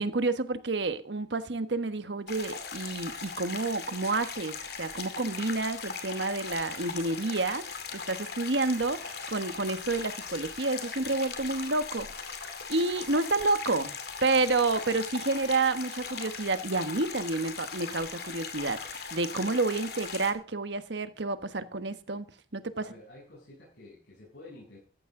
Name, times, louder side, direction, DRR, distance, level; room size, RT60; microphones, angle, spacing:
voice 1, 0.0-12.1 12.7-13.9 14.2-22.3 22.5-22.8, right 3 dB, 75° right, 1.3 m, -29 dB
sound 1, 2.3-20.3, left 5 dB, 60° left, 2.5 m, -39 dB
voice 2, 22.8-24.8, left 2 dB, 75° left, 7.1 m, -50 dB
14.5 x 13.5 x 3.8 m
head